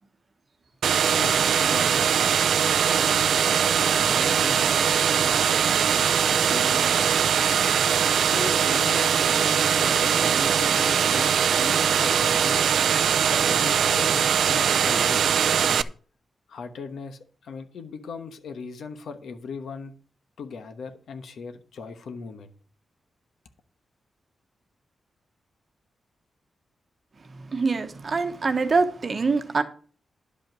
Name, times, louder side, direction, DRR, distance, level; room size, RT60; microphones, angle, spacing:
sound 1, 0.8-15.8, right 8 dB, 75° right, 0.4 m, -21 dB
voice 1, 1.1-3.3 3.7-7.5 8.2-12.7 13.3-15.2 15.6-15.9 16.5-19.9 20.4-22.5, left 5 dB, 85° left, 1.2 m, -39 dB
voice 2, 27.5-29.6, right 4 dB, 35° right, 1.0 m, -24 dB
11.0 x 5.4 x 6.1 m
wide cardioid pair, 160°, 0 cm